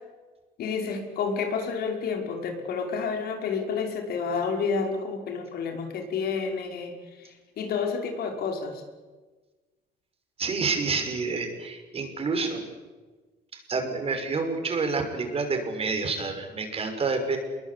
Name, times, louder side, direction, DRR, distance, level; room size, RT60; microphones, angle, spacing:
voice 1, 0.6-6.9 7.2-8.8, left 5 dB, 65° left, 3 dB, 5.4 m, -30 dB
voice 2, 10.4-12.6 13.7-17.4, right 4 dB, 35° right, 5 dB, 6.0 m, -28 dB
27.0 x 22.5 x 8.5 m, 1.3 s
cardioid pair, 110°, 17 cm